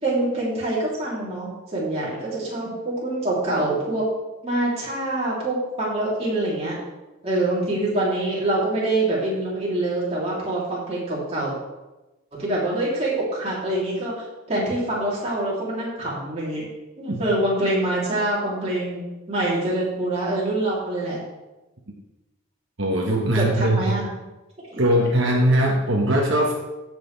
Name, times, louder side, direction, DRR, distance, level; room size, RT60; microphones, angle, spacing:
voice 1, 0.0-4.0 4.4-6.8 7.2-11.5 12.4-16.6 17.0-19.0 19.3-21.2 23.4-24.1 24.7-24.8, right 1 dB, 30° right, -6 dB, 3.2 m, -25 dB
voice 2, 22.8-23.8 24.8-26.5, right 1 dB, 65° right, -1 dB, 1.3 m, -20 dB
16.5 x 6.3 x 3.4 m, 1.1 s
head